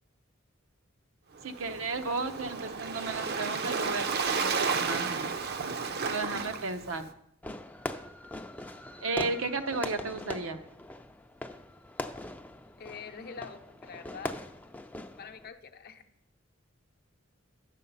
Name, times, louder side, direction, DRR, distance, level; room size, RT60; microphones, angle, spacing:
Waves surf, 1.4-7.1, right 5 dB, 50° right, 0.7 m, -32 dB
voice 1, 1.4-5.3 6.0-7.1 9.0-10.6, right 3 dB, 80° right, 8 dB, 0.8 m, -34 dB
Fireworks, 7.4-15.5, left 1 dB, 10° left, 0.4 m, -41 dB
voice 2, 12.8-14.4 15.2-16.0, left 6 dB, 50° left, 6 dB, 0.7 m, -45 dB
10.0 x 7.5 x 5.5 m, 0.76 s
head